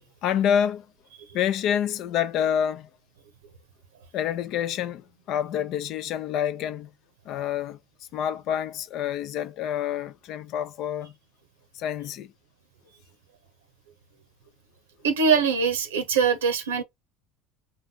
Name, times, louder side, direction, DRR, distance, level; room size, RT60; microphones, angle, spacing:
voice 1, 0.2-0.9 1.3-2.9 4.1-6.9 7.3-7.8 8.1-11.1 11.7-12.3, left 9 dB, 55° left, 0.5 m, -27 dB
voice 2, 15.0-16.8, right 6 dB, 80° right, 0.8 m, -22 dB
4.2 x 2.5 x 3.9 m
hypercardioid pair, 65°, 0 cm